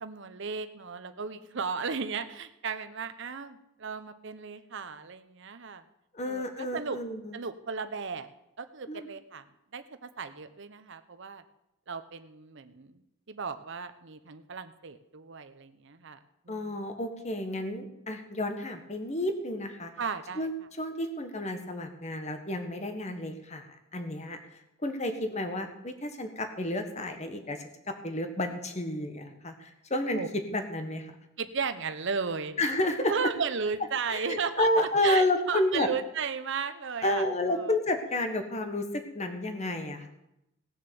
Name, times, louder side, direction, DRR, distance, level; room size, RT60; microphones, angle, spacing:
voice 1, 0.0-5.8 6.2-7.0 7.3-8.3 8.6-9.4 9.7-11.4 11.9-13.0 13.3-16.2 16.4-16.8 20.0-20.5 30.1-30.3 31.4-32.6 33.1-37.2 37.5-37.8, right 5 dB, 55° right, 10 dB, 0.8 m, -35 dB
voice 2, 6.1-7.4 8.9-9.1 16.5-19.9 20.4-20.5 20.8-23.7 23.9-24.4 24.8-27.6 27.9-31.1 32.6-33.1 34.1-35.9 37.0-40.1, left 1 dB, 30° left, 6 dB, 1.4 m, -31 dB
17.5 x 6.9 x 6.9 m, 0.86 s
head